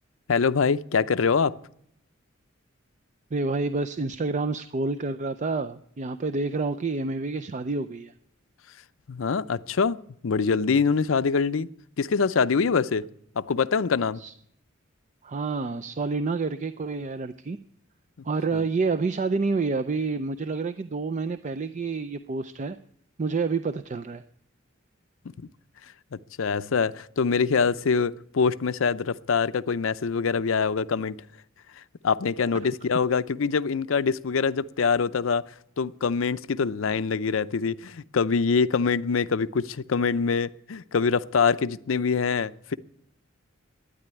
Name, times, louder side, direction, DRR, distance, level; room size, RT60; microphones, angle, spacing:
voice 1, 0.3-1.5 9.1-11.7 12.0-13.0 13.4-14.2 18.5-18.6 26.4-31.2 32.0-35.4 35.8-42.8, left 5 dB, 80° left, 0.5 m, -24 dB
voice 2, 3.3-8.1 14.2-14.3 15.2-17.6 18.2-22.8 23.2-24.2, right 3 dB, 35° right, 0.5 m, -28 dB
12.5 x 9.8 x 9.6 m
head